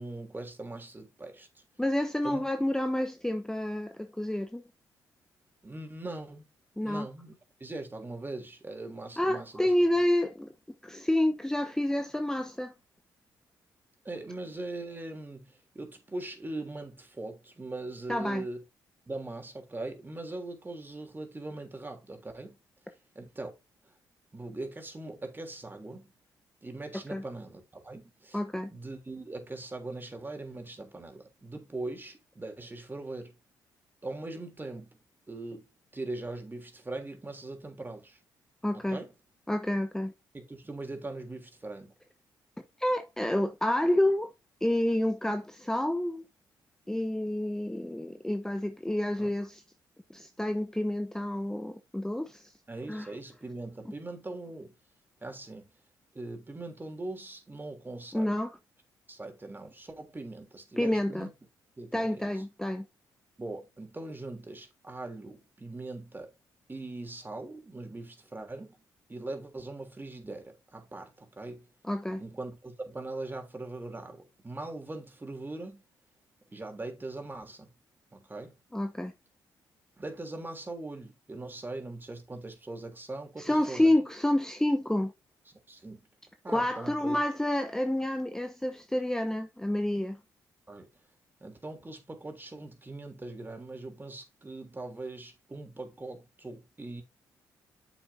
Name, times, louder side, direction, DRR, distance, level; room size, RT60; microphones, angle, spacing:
voice 1, 0.0-1.6 2.2-2.4 5.6-6.5 6.8-7.3 7.6-9.7 14.0-18.6 19.1-22.6 23.1-23.5 24.3-26.1 26.6-28.4 28.7-33.3 34.0-34.9 35.3-35.6 35.9-38.2 38.7-39.1 40.3-41.9 49.2-49.3 52.7-54.7 55.2-55.7 56.1-58.3 59.1-61.3 61.8-62.4 63.4-66.3 66.7-68.8 69.1-71.7 72.2-75.8 76.5-77.7 78.1-78.6 80.0-83.9 85.5-86.0 86.4-87.2 90.7-90.9 91.4-97.0, right 2 dB, 25° right, 3.2 m, -41 dB
voice 2, 1.8-4.6 6.8-7.1 9.2-10.5 10.8-12.7 18.1-18.4 27.1-27.2 28.3-28.7 38.6-39.0 39.5-40.1 42.8-44.3 44.6-46.2 46.9-49.6 50.1-52.5 52.9-53.1 58.1-58.5 60.8-61.3 61.9-62.9 71.8-72.2 78.7-79.1 83.4-85.1 86.5-90.2, left 1 dB, 5° left, 0.9 m, -29 dB
9.0 x 7.1 x 2.7 m
supercardioid pair, 55°, 9 cm